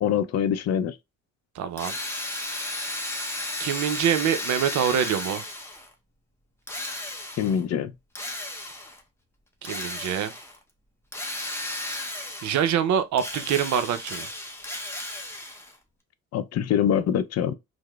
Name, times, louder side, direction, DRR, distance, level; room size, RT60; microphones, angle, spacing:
voice 1, 0.0-1.0 7.4-7.9 16.3-17.5, left 9 dB, 60° left, 0.4 m, -24 dB
voice 2, 1.5-2.0 3.6-5.5 9.6-10.3 12.4-14.3, right 9 dB, 70° right, 0.5 m, -25 dB
Drill, 1.8-5.9 6.7-7.6 8.2-9.0 9.6-10.6 11.1-12.8 13.1-15.8, left 2 dB, 10° left, 0.6 m, -34 dB
4.7 x 2.0 x 2.2 m
cardioid pair, 90°, 30 cm